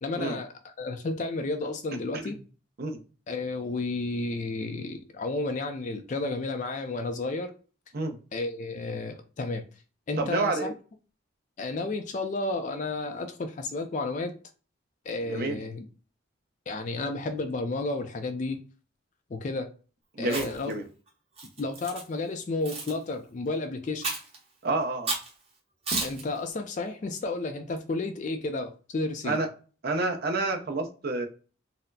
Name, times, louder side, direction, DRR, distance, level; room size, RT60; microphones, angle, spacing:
voice 1, 0.0-2.4 3.3-7.5 8.3-9.6 10.1-10.7 11.6-14.3 15.1-15.8 16.7-18.6 19.3-19.7 20.2-20.7 21.6-24.1 26.0-29.4, left 2 dB, 40° left, 0.3 m, -32 dB
voice 2, 10.2-10.7 15.2-15.6 20.2-20.8 24.6-25.1 29.2-29.5 29.8-31.3, right 3 dB, 50° right, 0.6 m, -29 dB
Chewing mastication, 20.2-20.7 21.4-22.0 22.6-22.9 24.0-24.4 25.1-25.3 25.9-26.2, right 3 dB, 30° right, 0.9 m, -32 dB
4.0 x 2.0 x 2.6 m
head